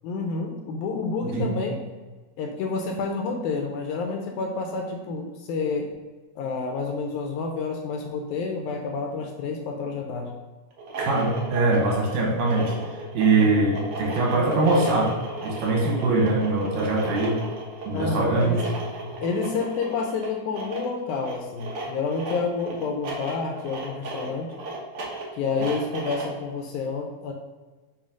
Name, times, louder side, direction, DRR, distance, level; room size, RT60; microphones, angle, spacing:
voice 1, 0.0-1.8 2.4-5.9 6.4-10.4 13.3-13.7 17.9-18.6 19.2-24.5 25.3-27.3, left 4 dB, 80° left, 3 dB, 1.9 m, -29 dB
sound 1, 10.7-26.4, right 2 dB, 60° right, 1.5 m, -35 dB
voice 2, 11.0-15.1 15.4-17.4 17.8-18.6, right 3 dB, 85° right, -2 dB, 3.1 m, -22 dB
7.0 x 2.7 x 5.0 m, 1.3 s
omnidirectional pair, 3.9 m